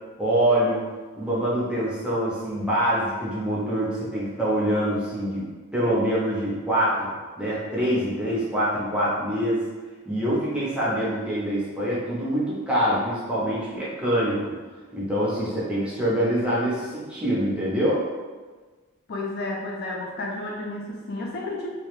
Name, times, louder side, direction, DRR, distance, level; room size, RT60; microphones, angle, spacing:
voice 1, 0.2-0.8 1.1-5.4 5.7-7.1 7.4-9.6 10.1-14.4 14.9-18.0, right 1 dB, 5° right, -8 dB, 0.5 m, -25 dB
voice 2, 19.1-21.7, left 2 dB, 50° left, -2 dB, 0.3 m, -31 dB
2.3 x 2.0 x 3.0 m, 1.4 s
head